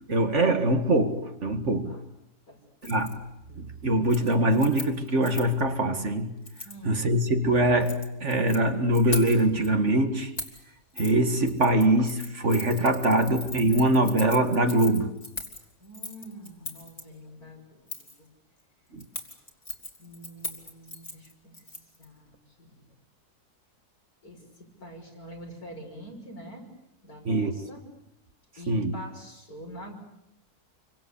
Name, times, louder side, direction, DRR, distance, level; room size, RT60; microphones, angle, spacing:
voice 1, 0.0-2.0 2.8-3.2 3.6-6.3 6.8-10.3 11.0-15.1 18.9-19.1 27.3-27.6 28.7-29.0, right 1 dB, 50° right, 2.1 m, -23 dB
Keys jangling, 2.8-3.1 3.5-3.8 4.0-5.6 6.4-6.8 7.6-8.6 8.9-9.7 10.4-10.6 11.0-11.1 11.4-17.0 17.9-18.2 19.0-22.0 22.3-22.4, left 2 dB, 25° left, 3.0 m, -39 dB
voice 2, 6.6-7.0 15.8-18.3 20.0-21.6 22.0-22.3 22.6-22.9 24.2-26.7 27.0-27.8 28.6-30.1, equal, 70° left, 6.5 m, -45 dB
28.5 x 24.5 x 8.5 m
omnidirectional pair, 1.7 m